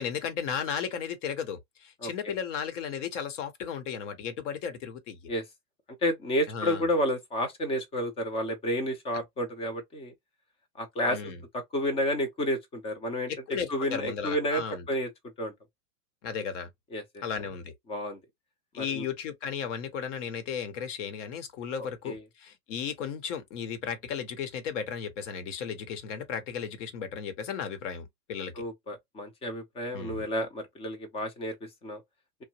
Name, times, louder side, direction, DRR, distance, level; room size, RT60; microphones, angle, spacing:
voice 1, 0.0-5.2 6.5-6.8 11.1-11.4 13.3-14.9 16.2-16.7 17.2-17.7 18.7-28.6 29.9-30.2, left 7 dB, 50° left, 1.0 m, -35 dB
voice 2, 2.0-2.3 5.3-5.4 6.0-10.1 10.8-15.1 15.4-15.5 16.9-17.2 17.9-18.2 18.7-19.1 22.1-22.2 28.6-31.5 31.8-32.0, equal, 15° left, 0.5 m, -31 dB
2.9 x 2.1 x 2.8 m
hypercardioid pair, 125°, 48 cm